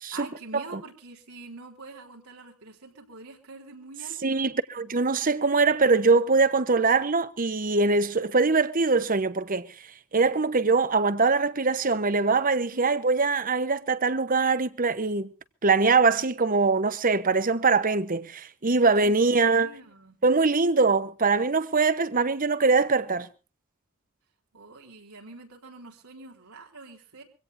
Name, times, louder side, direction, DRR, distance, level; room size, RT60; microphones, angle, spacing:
voice 1, 0.1-4.5 12.6-12.9 19.0-20.2 24.5-27.2, right 3 dB, 80° right, 4.1 m, -45 dB
voice 2, 4.2-9.7 10.1-15.3 15.6-19.7 20.2-23.3, right 4 dB, 40° right, 1.0 m, -23 dB
24.5 x 17.0 x 2.7 m
head